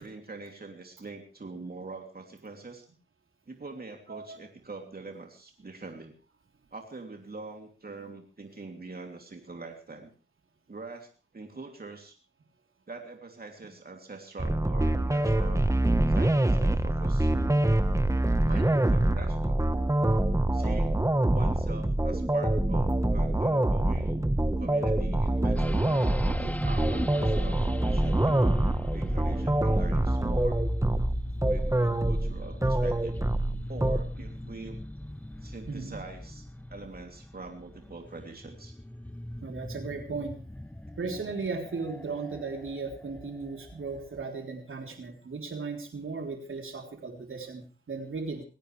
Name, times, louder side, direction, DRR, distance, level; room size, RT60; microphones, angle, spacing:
voice 1, 0.0-2.8 3.5-6.1 6.7-10.1 10.7-12.2 12.9-15.7 16.1-17.3 18.4-19.6 20.5-21.0 21.3-24.2 24.6-28.6 28.9-30.6 31.5-33.2 33.7-34.8 35.4-38.7, right 3 dB, 45° right, 3 dB, 3.0 m, -43 dB
sound 1, 14.4-34.0, right 1 dB, 15° right, 1.3 m, -25 dB
sound 2, 25.6-44.2, left 1 dB, 5° left, 0.7 m, -38 dB
voice 2, 35.7-36.0 39.4-40.4 41.0-48.4, right 4 dB, 75° right, 2 dB, 3.6 m, -36 dB
21.0 x 16.5 x 3.3 m, 0.36 s
cardioid pair, 60°, 21 cm